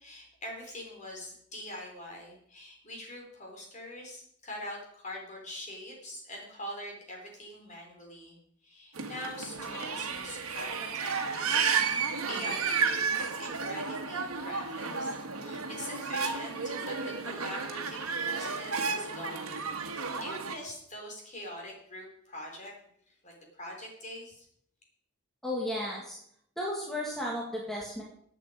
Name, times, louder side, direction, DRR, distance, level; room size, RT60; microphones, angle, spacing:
voice 1, 0.0-8.4 8.6-22.7 23.1-24.5, left 1 dB, 35° left, 0 dB, 3.9 m, -44 dB
sound 1, 8.9-20.6, right 5 dB, 80° right, 1.6 m, -32 dB
voice 2, 25.4-26.2 26.6-28.0, left 1 dB, ahead, -4 dB, 2.0 m, -34 dB
16.0 x 8.4 x 5.0 m, 0.68 s
head